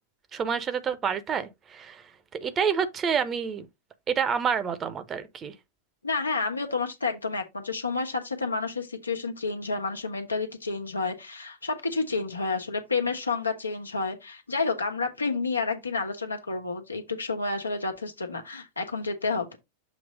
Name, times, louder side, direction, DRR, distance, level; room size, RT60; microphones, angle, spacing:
voice 1, 0.3-2.1 2.4-3.7 4.1-5.5, right 7 dB, 25° right, 0.9 m, -28 dB
voice 2, 6.0-19.6, left 4 dB, 80° left, 1.2 m, -30 dB
7.2 x 3.1 x 5.0 m
figure-of-eight pair, 90°, 0 cm